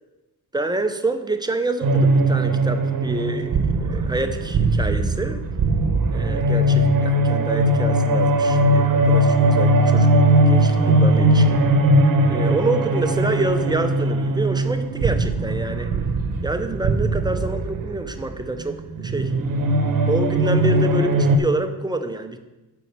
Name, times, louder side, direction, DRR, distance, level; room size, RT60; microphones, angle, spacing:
voice 1, 0.5-5.4 6.1-11.6 12.3-15.9 16.4-19.3 20.1-22.4, right 2 dB, 10° right, 8 dB, 0.5 m, -27 dB
sound 1, 1.8-21.4, right 1 dB, 60° right, 0.9 m, -19 dB
8.2 x 5.3 x 5.9 m, 1.1 s
wide cardioid pair, 150°, 37 cm